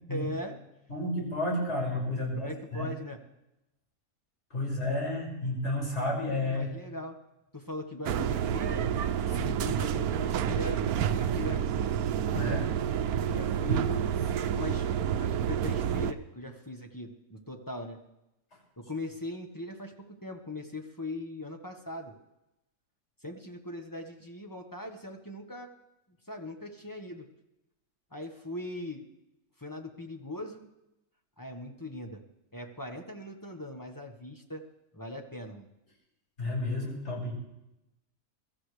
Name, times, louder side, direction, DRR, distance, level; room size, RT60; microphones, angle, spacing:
voice 1, 0.1-0.5 2.2-3.2 6.4-7.2 7.5-8.9 9.3-11.7 12.0-12.1 13.2-14.0 14.5-14.9 15.2-18.0 18.8-19.9 20.2-22.1 23.2-25.7 26.3-27.3 28.1-29.0 29.6-30.7 31.4-32.2 32.5-34.6 34.9-35.7, left 1 dB, 15° left, 3 dB, 1.3 m, -40 dB
voice 2, 0.9-2.9 4.5-6.7 9.3-9.6 12.3-12.7 36.4-37.3, left 1 dB, 50° left, -3 dB, 6.4 m, -31 dB
sound 1, 8.0-16.1, right 9 dB, 85° right, 1.2 m, -29 dB
23.0 x 14.0 x 3.3 m, 0.90 s
omnidirectional pair, 1.5 m